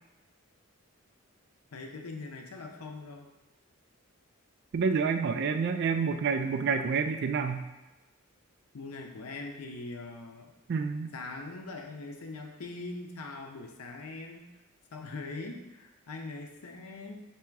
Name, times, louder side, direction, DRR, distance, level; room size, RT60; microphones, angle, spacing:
voice 1, 1.7-3.3 8.7-10.5 11.1-14.5 14.9-17.2, left 3 dB, 90° left, 3 dB, 0.6 m, -42 dB
voice 2, 4.7-7.7 10.7-11.1, right 5 dB, 50° right, 8 dB, 0.3 m, -28 dB
3.4 x 2.9 x 4.5 m, 1.1 s
head